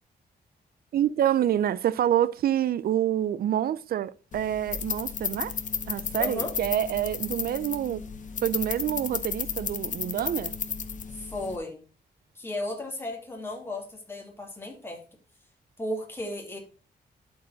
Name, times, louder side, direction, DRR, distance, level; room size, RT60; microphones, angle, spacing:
voice 1, 0.9-5.5 5.9-8.0 8.4-10.5, right 11 dB, 65° right, 0.4 m, -27 dB
sound 1, 4.3-11.6, left 6 dB, 50° left, 0.8 m, -33 dB
voice 2, 6.2-6.5 11.1-11.8 12.3-15.0 15.8-16.6, left 1 dB, 15° left, 2.6 m, -34 dB
11.5 x 4.5 x 4.0 m
wide cardioid pair, 130°, 17 cm